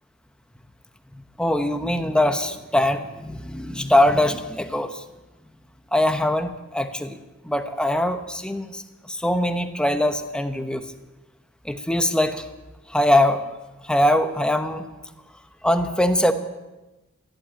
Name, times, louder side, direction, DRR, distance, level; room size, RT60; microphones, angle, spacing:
voice 1, 1.4-5.0 5.9-7.2 7.4-10.8 11.6-12.4 12.9-13.5 13.8-14.8 15.6-16.3, left 1 dB, 5° left, 8 dB, 0.9 m, -22 dB
14.0 x 11.5 x 8.8 m, 1.1 s
head